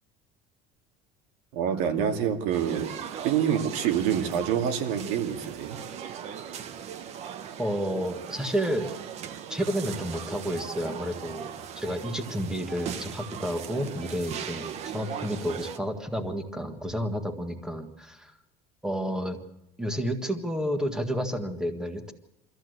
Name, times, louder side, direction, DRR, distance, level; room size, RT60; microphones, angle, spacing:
voice 1, 1.5-2.9 3.2-5.8, right 8 dB, 85° right, 6 dB, 2.5 m, -26 dB
sound 1, 2.5-15.8, right 8 dB, 45° right, 1.2 m, -39 dB
voice 2, 7.6-8.9 9.5-18.3 18.8-19.4 19.8-22.1, equal, 5° right, 7 dB, 1.7 m, -31 dB
24.5 x 14.5 x 8.0 m, 0.93 s
cardioid pair, 160°, 16 cm